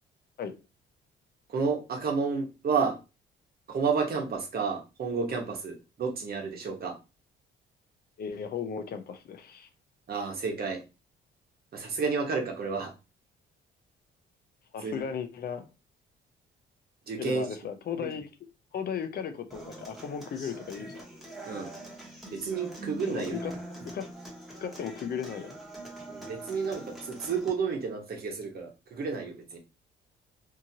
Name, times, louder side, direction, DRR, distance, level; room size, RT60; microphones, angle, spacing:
voice 1, 1.5-3.0 3.7-7.0 10.1-10.8 11.7-12.9 14.8-15.0 17.1-17.5 17.9-18.1 21.4-21.7 22.3-23.4 26.1-29.6, right 5 dB, 50° right, 1.1 m, -31 dB
voice 2, 8.2-9.7 14.7-15.7 17.2-18.3 18.7-21.0 23.1-23.5 23.8-24.1 24.6-25.5, left 7 dB, 50° left, 0.6 m, -36 dB
Human voice / Acoustic guitar, 19.5-27.5, right 1 dB, ahead, 1.1 m, -43 dB
2.8 x 2.5 x 2.8 m
cardioid pair, 90°, 20 cm